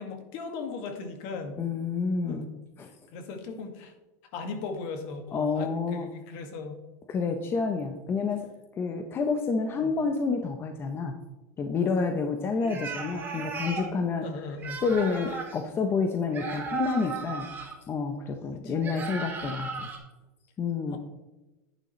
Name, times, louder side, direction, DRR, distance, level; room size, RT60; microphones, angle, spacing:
voice 1, 0.0-1.6 2.2-2.5 3.1-3.9 4.3-6.7 9.8-9.9 12.7-12.9 14.2-14.8 18.5-18.7 20.9-21.0, left 4 dB, 55° left, 5 dB, 2.0 m, -38 dB
voice 2, 1.6-2.5 2.8-2.9 5.3-6.1 7.1-8.5 8.8-11.2 11.6-14.3 14.8-17.5 17.9-19.9 20.6-21.0, left 4 dB, 25° left, 5 dB, 0.8 m, -29 dB
sound 1, 12.6-13.9 14.6-15.6 16.3-17.7 18.8-20.0, right 5 dB, 20° right, 2.4 m, -36 dB
10.5 x 9.4 x 3.2 m, 1.1 s
supercardioid pair, 140°, 9 cm